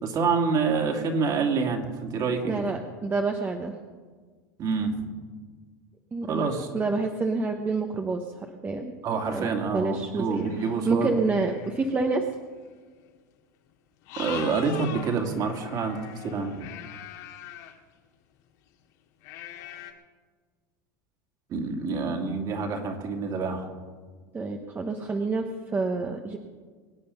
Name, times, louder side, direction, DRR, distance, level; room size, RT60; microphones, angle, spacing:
voice 1, 0.0-2.7 4.6-5.1 6.3-6.7 9.0-11.1 14.2-16.7 21.5-23.7, right 5 dB, 40° right, 3 dB, 2.6 m, -27 dB
voice 2, 2.5-3.7 6.1-8.9 9.3-12.2 24.3-26.4, right 3 dB, 20° right, 4 dB, 1.0 m, -28 dB
sound 1, 10.3-11.9 12.6-12.8 13.1-13.2 14.0-17.8 19.2-19.9, left 11 dB, 70° left, 2.0 m, -42 dB
23.5 x 8.8 x 5.7 m, 1.5 s
supercardioid pair, 120°, 10 cm